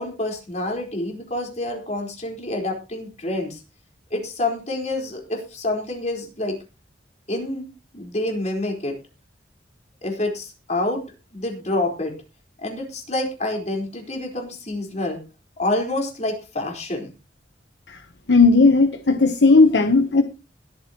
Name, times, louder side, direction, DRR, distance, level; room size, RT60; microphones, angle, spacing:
voice 1, 0.0-3.6 4.1-6.6 7.3-7.7 7.9-8.9 10.0-11.0 11.3-12.1 12.6-15.2 15.6-17.1, left 2 dB, 40° left, 4.4 m, -27 dB
voice 2, 18.3-20.2, left 3 dB, 75° left, 1.0 m, -15 dB
21.0 x 8.8 x 3.0 m
head